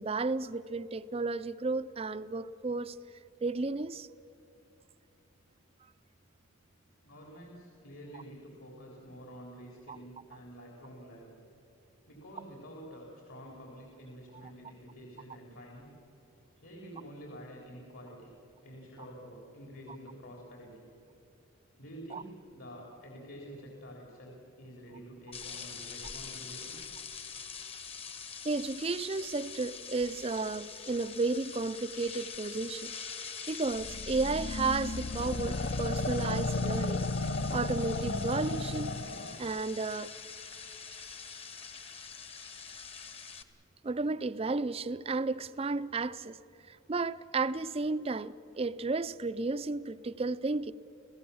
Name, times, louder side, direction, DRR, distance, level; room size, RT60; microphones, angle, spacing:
voice 1, 0.0-3.0 3.4-4.1 9.9-10.0 22.1-22.2 28.4-32.9 33.5-37.0 37.5-38.9 39.4-40.1 43.8-46.4 46.7-50.7, right 3 dB, 25° right, 0.4 m, -33 dB
voice 2, 7.0-11.4 12.1-15.9 16.6-18.3 18.6-20.9 21.8-26.8, equal, 70° left, 3.7 m, -48 dB
sound 1, 25.3-43.4, left 6 dB, 25° left, 1.0 m, -44 dB
sound 2, 33.8-39.4, left 3 dB, 50° left, 0.7 m, -33 dB
30.0 x 16.5 x 7.1 m
head